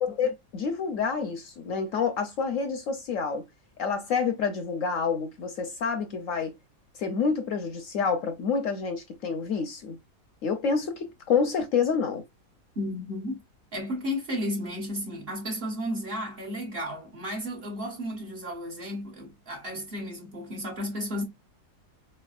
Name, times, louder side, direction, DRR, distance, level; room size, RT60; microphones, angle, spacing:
voice 1, 0.0-3.5 3.8-6.5 6.9-10.0 10.4-12.2, left 5 dB, 65° left, 0.9 m, -28 dB
voice 2, 12.7-13.4 13.7-21.2, left 1 dB, 40° right, 1.2 m, -33 dB
4.7 x 3.2 x 2.4 m
omnidirectional pair, 1.7 m